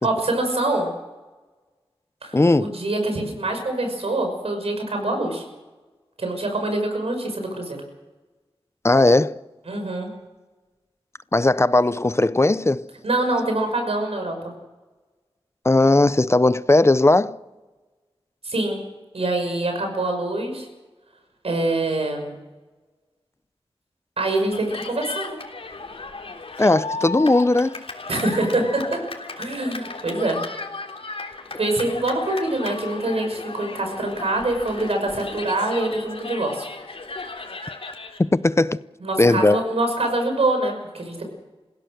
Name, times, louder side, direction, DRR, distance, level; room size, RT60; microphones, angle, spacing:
voice 1, 0.0-0.9 2.2-5.4 6.2-7.8 9.7-10.1 13.0-14.3 18.4-18.8 19.1-20.7 21.4-22.4 24.2-25.4 28.1-29.0 29.4-30.4 31.6-36.7 39.0-41.2, right 2 dB, 80° right, 6.0 m, -25 dB
voice 2, 2.3-2.8 8.8-9.4 11.3-12.9 15.6-17.4 26.6-27.8 38.2-38.8 39.2-39.6, left 2 dB, 25° left, 0.6 m, -18 dB
Cheering, 24.5-38.2, left 3 dB, 70° left, 3.4 m, -35 dB
28.0 x 16.5 x 6.6 m
wide cardioid pair, 75°, 10 cm